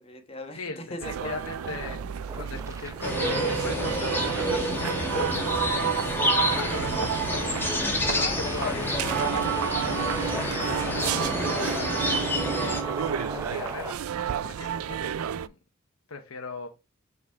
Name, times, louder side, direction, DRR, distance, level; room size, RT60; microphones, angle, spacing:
voice 1, 0.0-1.4 7.8-10.2, left 2 dB, 30° left, 5 dB, 1.3 m, -38 dB
voice 2, 0.6-2.0 2.3-7.6 8.1-9.0 10.4-12.2 12.5-14.1 14.4-15.5 16.1-16.7, left 4 dB, 85° left, 4 dB, 0.9 m, -38 dB
sound 1, 1.0-15.5, right 8 dB, 85° right, 0.4 m, -31 dB
sound 2, 1.4-13.9, right 2 dB, 15° right, 0.6 m, -40 dB
sound 3, 3.0-12.8, left 1 dB, 10° left, 1.6 m, -29 dB
6.0 x 4.0 x 4.6 m, 0.26 s
head